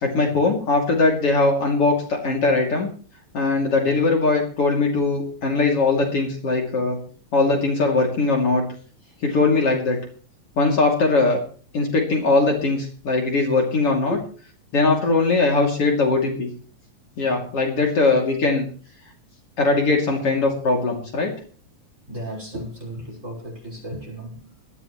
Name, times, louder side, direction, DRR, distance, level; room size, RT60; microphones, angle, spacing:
voice 1, 0.0-2.9 3.3-7.0 7.3-8.7 9.2-10.0 10.6-11.4 11.7-14.2 14.7-16.5 17.2-18.7 19.6-21.3, left 3 dB, 50° left, 3.7 m, -20 dB
voice 2, 22.1-24.5, equal, 25° right, 5.8 m, -34 dB
24.0 x 11.5 x 3.2 m
omnidirectional pair, 3.4 m